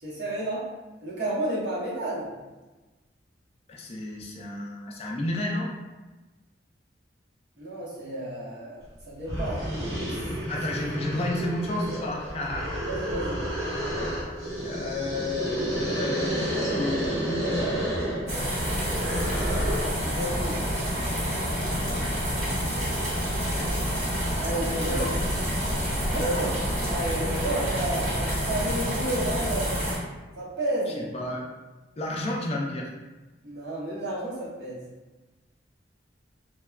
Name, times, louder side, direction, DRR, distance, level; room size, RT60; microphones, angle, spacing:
voice 1, 0.0-0.6 1.0-2.3 7.6-8.8 9.1-10.2 12.9-13.5 20.0-20.7 24.4-25.1 26.1-29.8 30.4-31.1 33.4-34.8, right 1 dB, 65° right, -6 dB, 0.9 m, -31 dB
voice 2, 3.7-5.7 10.5-13.0 14.0-14.1 14.6-17.8 24.9-25.2 31.0-31.4 32.0-32.9, left 1 dB, 35° left, -1 dB, 0.3 m, -32 dB
sound 1, 8.9-9.0 9.2-20.0, equal, 85° right, 1.2 m, -30 dB
sound 2, 17.3-28.3, left 2 dB, 55° left, 0.7 m, -41 dB
sound 3, 18.3-30.0, equal, 40° right, 1.1 m, -28 dB
3.1 x 2.1 x 2.3 m, 1.2 s
head